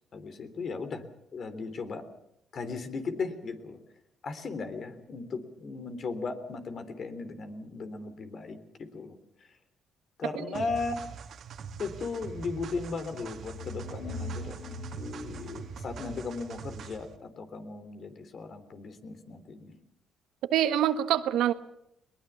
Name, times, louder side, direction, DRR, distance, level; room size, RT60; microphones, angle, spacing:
voice 1, 0.1-1.0 1.3-2.1 2.5-3.8 4.2-8.6 8.9-9.2 10.2-11.1 11.8-17.1 17.4-19.8, left 4 dB, 55° left, 9 dB, 3.3 m, -36 dB
sound 1, 10.5-17.2, right 6 dB, 65° right, 2.0 m, -43 dB
sound 2, 13.1-16.8, left 2 dB, 75° left, 7.8 m, -42 dB
voice 2, 20.5-21.5, right 11 dB, 90° right, 11 dB, 1.3 m, -25 dB
21.5 x 20.5 x 7.1 m, 0.82 s
cardioid pair, 90°, 0 cm